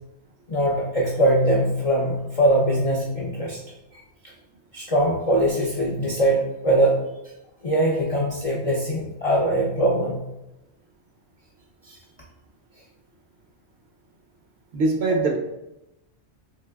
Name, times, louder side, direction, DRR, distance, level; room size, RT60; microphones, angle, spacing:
voice 1, 0.5-3.6 4.7-7.0 7.6-10.1 11.8-12.0 15.1-15.2, right 1 dB, 60° left, -3 dB, 0.3 m, -22 dB
voice 2, 14.7-15.4, right 3 dB, 65° right, 1 dB, 0.8 m, -21 dB
3.9 x 2.7 x 2.2 m, 0.92 s
omnidirectional pair, 1.2 m